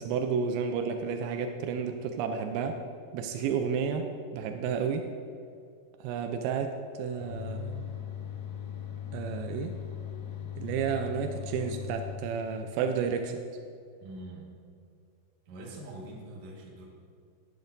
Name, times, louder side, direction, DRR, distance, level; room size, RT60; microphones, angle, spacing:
voice 1, 0.0-2.8 3.1-5.1 6.0-7.9 9.1-9.8 10.6-13.4, right 6 dB, 90° right, 6 dB, 2.2 m, -31 dB
sound 1, 7.2-12.2, left 9 dB, 75° left, 2.0 m, -39 dB
voice 2, 14.0-14.6 15.5-16.9, right 1 dB, 55° right, -3 dB, 2.2 m, -44 dB
12.5 x 10.0 x 2.6 m, 2.4 s
omnidirectional pair, 5.0 m